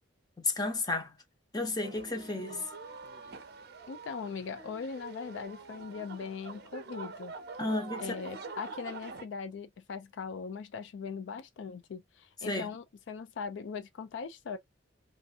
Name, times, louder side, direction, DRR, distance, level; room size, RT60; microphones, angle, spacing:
voice 1, 0.4-1.1 1.5-2.7 7.6-8.0 12.5-12.7, left 2 dB, 20° left, 0.8 m, -32 dB
sound 1, 1.8-9.3, right 4 dB, 55° right, 0.5 m, -45 dB
voice 2, 3.9-7.3 8.0-14.6, left 5 dB, 70° left, 0.4 m, -40 dB
2.7 x 2.5 x 2.4 m
head